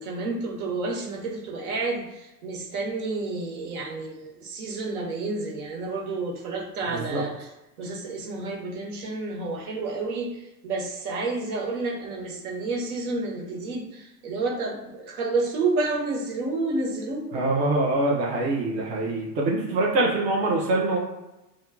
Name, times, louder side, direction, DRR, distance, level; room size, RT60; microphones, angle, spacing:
voice 1, 0.0-7.5 7.8-17.4, right 3 dB, 60° right, -1 dB, 1.2 m, -30 dB
voice 2, 6.9-7.2 17.3-21.0, right 2 dB, 20° right, -2 dB, 0.4 m, -24 dB
2.6 x 2.3 x 3.5 m, 0.97 s
hypercardioid pair, 95°, 50 cm